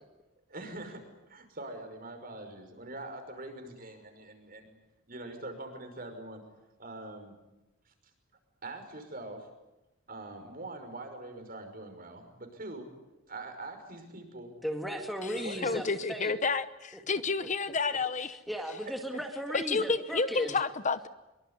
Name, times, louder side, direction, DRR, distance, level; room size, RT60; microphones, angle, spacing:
voice 1, 0.5-4.8 5.1-6.4 6.8-7.3 7.9-8.0 8.6-9.5 10.1-12.9 13.3-14.5 15.3-15.8, right 2 dB, 45° right, 6 dB, 5.7 m, -43 dB
voice 2, 14.6-16.3 18.5-20.5, equal, ahead, 3 dB, 2.0 m, -36 dB
voice 3, 15.2-18.4 19.5-21.1, left 4 dB, 35° left, 13 dB, 0.9 m, -30 dB
25.0 x 23.5 x 9.7 m, 1.0 s
head